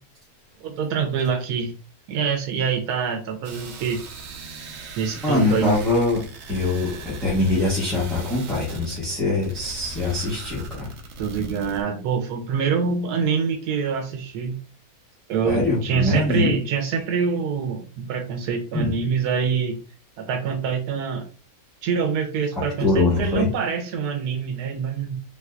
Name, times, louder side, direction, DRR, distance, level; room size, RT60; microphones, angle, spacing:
voice 1, 0.6-1.7 2.1-4.0 5.0-5.8 11.2-14.6 15.3-19.8 20.2-21.2 21.8-25.2, right 6 dB, 90° right, 4 dB, 1.2 m, -25 dB
sound 1, 3.4-11.8, right 3 dB, 70° right, 1.0 m, -39 dB
voice 2, 5.2-6.2 6.5-10.9 15.4-16.5 18.7-18.9 22.8-23.5, left 3 dB, ahead, -9 dB, 0.9 m, -23 dB
3.3 x 3.0 x 2.4 m, 0.36 s
omnidirectional pair, 1.6 m